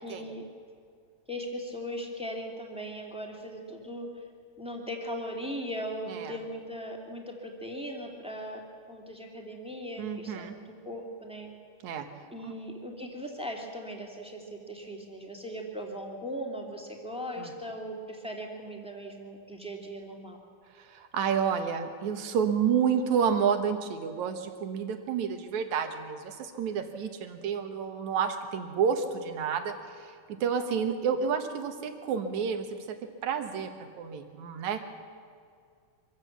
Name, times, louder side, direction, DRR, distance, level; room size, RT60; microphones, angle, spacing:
voice 1, 0.0-0.4 1.3-4.3 4.6-8.6 8.9-11.5 12.3-20.4, equal, ahead, 0 dB, 2.1 m, -39 dB
voice 2, 6.1-6.4 10.0-10.5 11.8-12.1 12.4-12.5 17.4-17.5 20.8-30.1 30.4-33.0 33.2-33.7 34.0-34.8, right 7 dB, 70° right, 7 dB, 2.7 m, -30 dB
25.0 x 16.0 x 7.3 m, 2.2 s
omnidirectional pair, 3.7 m